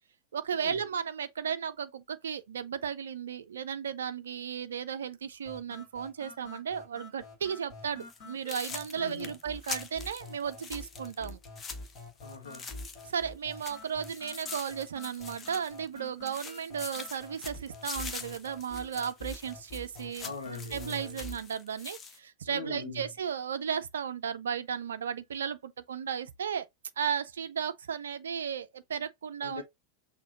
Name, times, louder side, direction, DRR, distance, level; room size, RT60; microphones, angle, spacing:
voice 1, 0.3-11.4 13.1-20.3 20.7-26.7 27.0-29.6, right 7 dB, 65° right, 0.3 m, -35 dB
sound 1, 5.5-21.5, left 2 dB, 40° left, 1.7 m, -47 dB
sound 2, 8.0-8.2 8.5-13.2 13.5-16.0 16.3-22.2, left 4 dB, 20° left, 0.7 m, -44 dB
voice 2, 8.9-9.3 12.2-12.7 20.2-21.2 22.5-23.1 29.4-29.6, left 3 dB, 75° left, 1.0 m, -41 dB
6.1 x 2.5 x 2.6 m
figure-of-eight pair, 90°, 0 cm